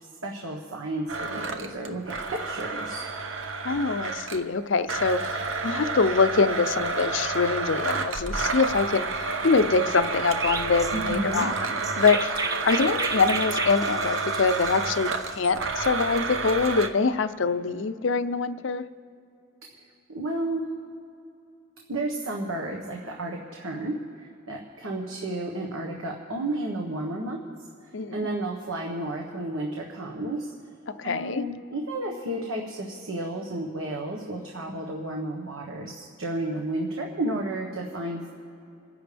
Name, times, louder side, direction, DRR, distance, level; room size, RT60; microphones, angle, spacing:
voice 1, 0.2-3.0 10.9-11.5 20.1-20.7 21.9-27.4 28.1-30.5 31.0-38.3, right 1 dB, 90° right, 0 dB, 1.4 m, -32 dB
Domestic sounds home sounds, 1.1-4.5 4.9-16.9, right 3 dB, 65° right, 0.9 m, -30 dB
voice 2, 3.6-5.4 5.6-11.5 12.0-18.8 27.9-28.2 31.0-31.4, left 4 dB, 60° left, 11 dB, 0.6 m, -24 dB
Chirp tweet, 10.4-15.5, right 3 dB, 15° right, 0.4 m, -33 dB
28.5 x 10.5 x 3.5 m, 2.7 s
head